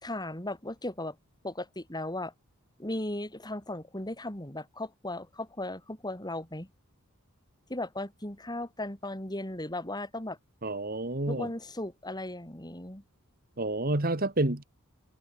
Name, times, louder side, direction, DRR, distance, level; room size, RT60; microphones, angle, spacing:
voice 1, 0.0-1.2 1.4-2.3 2.8-6.7 7.7-10.4 11.3-13.0, left 1 dB, 20° left, 4.1 m, -36 dB
voice 2, 10.6-11.5 13.6-14.6, right 2 dB, 40° right, 2.2 m, -29 dB
head